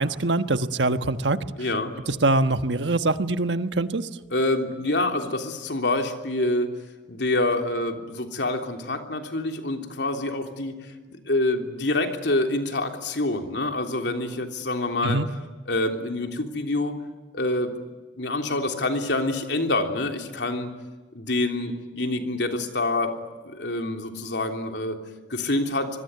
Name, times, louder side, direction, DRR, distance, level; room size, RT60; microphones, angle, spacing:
voice 1, 0.0-1.4 2.1-4.1 15.0-15.3, right 2 dB, 85° right, 10 dB, 1.3 m, -23 dB
voice 2, 1.6-1.9 4.3-6.7 7.1-10.8 11.3-15.2 15.7-16.9 17.3-17.7 18.2-20.7 21.1-23.1 23.4-25.0 25.3-25.9, left 2 dB, 80° left, 4 dB, 3.4 m, -26 dB
26.0 x 22.0 x 9.6 m, 1.2 s
head